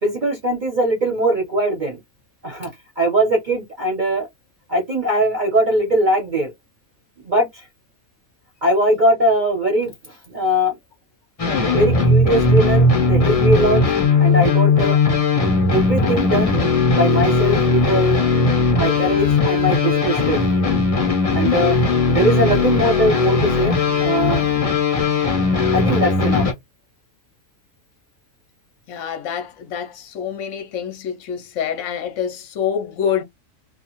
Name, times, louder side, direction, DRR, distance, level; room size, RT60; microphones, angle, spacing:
voice 1, 0.0-2.0 2.4-2.7 3.0-4.3 4.7-6.5 7.2-7.6 8.6-10.7 11.7-13.8 14.2-15.0 15.7-16.5 16.9-18.2 18.8-20.5 21.3-21.8 22.1-24.4 25.7-26.4, right 1 dB, 40° right, 1.0 m, -20 dB
sound 1, 11.4-26.5, left 3 dB, 30° left, 0.7 m, -18 dB
voice 2, 28.9-33.2, left 8 dB, 70° left, 1.0 m, -26 dB
2.4 x 2.3 x 2.9 m
omnidirectional pair, 1.4 m